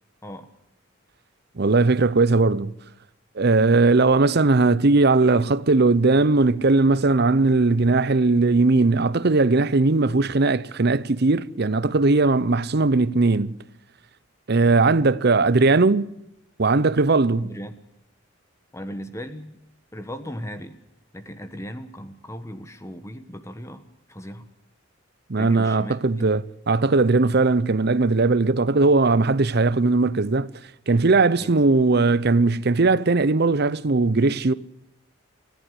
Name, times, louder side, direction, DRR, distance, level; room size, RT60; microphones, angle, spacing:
voice 1, 1.6-2.7 3.4-13.6 14.5-16.1 16.6-17.5 25.3-30.5 30.9-34.5, right 3 dB, 50° right, 0.7 m, -19 dB
voice 2, 17.4-17.7 18.7-19.6 19.9-20.8 21.1-24.5 25.4-26.3 31.4-31.6, equal, 15° left, 1.3 m, -37 dB
20.0 x 14.5 x 9.9 m
head